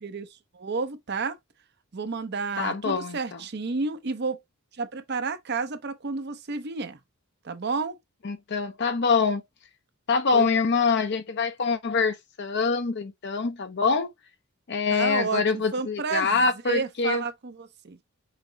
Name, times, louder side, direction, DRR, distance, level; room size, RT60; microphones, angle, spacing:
voice 1, 0.5-1.4 1.9-4.4 4.8-7.0 7.4-8.0 10.3-10.5 14.9-15.4 15.7-16.4 16.7-18.0, right 4 dB, 50° right, 0.6 m, -31 dB
voice 2, 2.6-3.4 8.2-9.4 10.1-14.1 14.7-17.2, left 4 dB, 55° left, 0.6 m, -25 dB
5.8 x 2.0 x 3.8 m
head